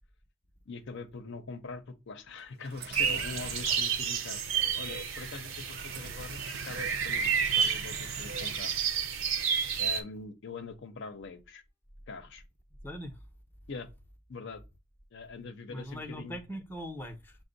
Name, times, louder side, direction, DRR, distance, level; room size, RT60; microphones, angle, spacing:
voice 1, 0.7-8.7 9.8-11.6 12.1-12.4 13.7-13.9 14.3-14.6 15.1-16.4, left 4 dB, 65° left, 0.6 m, -43 dB
sound 1, 2.6-4.0 5.4-8.6, right 4 dB, 50° right, 0.5 m, -45 dB
sound 2, 2.9-10.0, right 7 dB, 75° right, 0.8 m, -30 dB
voice 2, 12.8-13.2 15.7-17.4, equal, 10° left, 0.6 m, -41 dB
5.9 x 2.0 x 3.8 m
head